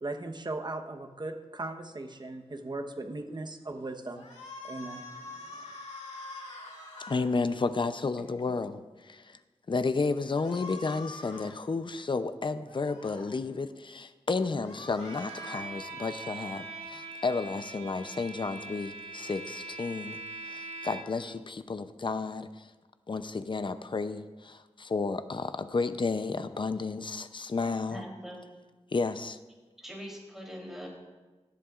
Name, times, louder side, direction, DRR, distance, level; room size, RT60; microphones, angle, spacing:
voice 1, 0.0-4.3 4.6-5.7, right 2 dB, 40° right, 4 dB, 1.0 m, -38 dB
sound 1, 4.1-7.2 10.3-11.5 12.7-13.3 14.4-15.6, left 2 dB, 70° left, 2.2 m, -45 dB
voice 2, 7.1-9.4 9.7-20.2 20.5-22.7 23.1-28.0 28.9-29.4, left 4 dB, 45° left, 11 dB, 0.6 m, -32 dB
Bowed string instrument, 15.0-21.3, right 3 dB, 65° right, 2.2 m, -42 dB
voice 3, 27.9-28.4 29.8-30.9, equal, 5° right, -2 dB, 3.4 m, -43 dB
18.0 x 13.0 x 2.5 m, 1.2 s
wide cardioid pair, 100°, 12 cm